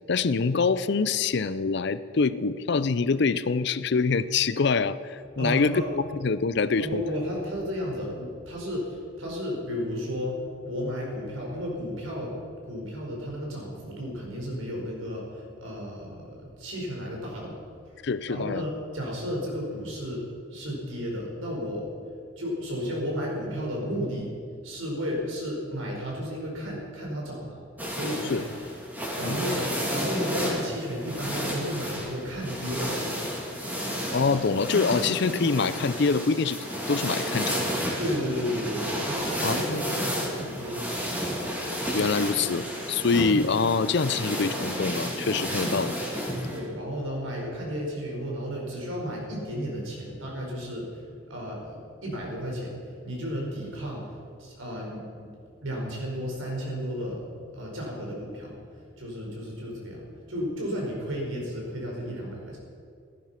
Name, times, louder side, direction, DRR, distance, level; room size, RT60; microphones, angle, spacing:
voice 1, 0.1-7.0 18.0-18.7 28.3-28.4 29.2-29.4 34.1-36.6 36.9-37.6 39.4-40.1 41.9-45.9, left 4 dB, 55° left, 15 dB, 0.5 m, -25 dB
voice 2, 5.3-5.9 6.8-12.4 12.6-21.9 22.3-24.3 24.6-28.6 28.9-33.3 38.0-41.2 46.5-55.3 55.6-57.2 57.5-62.6, equal, 80° right, -1 dB, 4.9 m, -33 dB
sound 1, 27.8-46.6, equal, 10° right, 3.2 m, -31 dB
16.0 x 14.5 x 5.9 m, 2.3 s
head